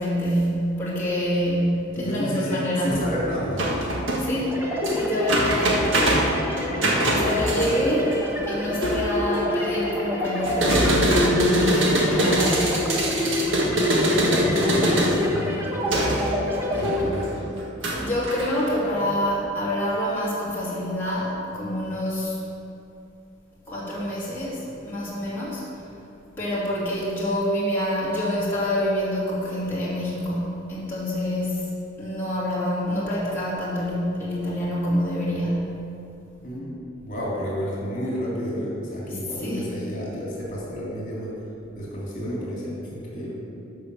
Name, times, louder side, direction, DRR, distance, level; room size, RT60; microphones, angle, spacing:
voice 1, 0.0-3.0 4.2-4.6 4.9-5.9 7.1-8.1 8.5-12.8 18.0-22.4 23.7-25.7 26.4-31.7 32.0-35.7 39.1-39.6, equal, 10° left, -9 dB, 2.5 m, -26 dB
voice 2, 1.9-3.7 6.5-7.5 13.2-15.7 16.7-17.3 36.4-41.4 41.8-43.3, equal, 45° left, -5 dB, 2.8 m, -31 dB
sound 1, 2.9-3.1 3.6-9.7 10.4-19.1, right 1 dB, 70° right, 1.7 m, -24 dB
sound 2, 4.5-17.0, left 1 dB, 15° right, 1.3 m, -28 dB
12.0 x 5.7 x 6.9 m, 2.7 s
head